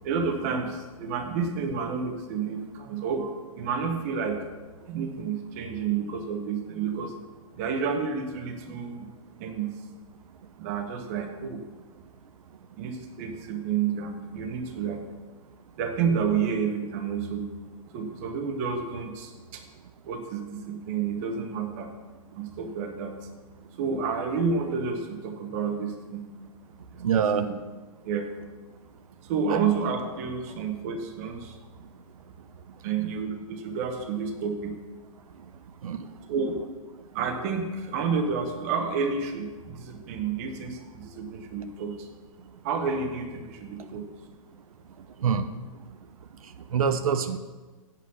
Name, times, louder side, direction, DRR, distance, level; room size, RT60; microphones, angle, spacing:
voice 1, 0.0-4.4 4.9-7.1 7.6-9.1 9.4-9.8 10.6-11.6 12.8-15.0 15.8-17.5 17.9-19.6 20.1-21.9 22.4-23.2 23.8-26.3 26.9-27.5 28.0-28.3 29.2-31.6 32.8-34.7 36.3-36.6 37.1-42.1 42.6-44.0, right 5 dB, 25° right, 5 dB, 1.0 m, -30 dB
voice 2, 27.0-27.4 29.5-29.6 35.8-36.0 45.2-45.5 46.7-47.4, right 7 dB, 75° right, 10 dB, 0.7 m, -24 dB
8.6 x 7.7 x 6.2 m, 1.3 s
hypercardioid pair, 170°, 19 cm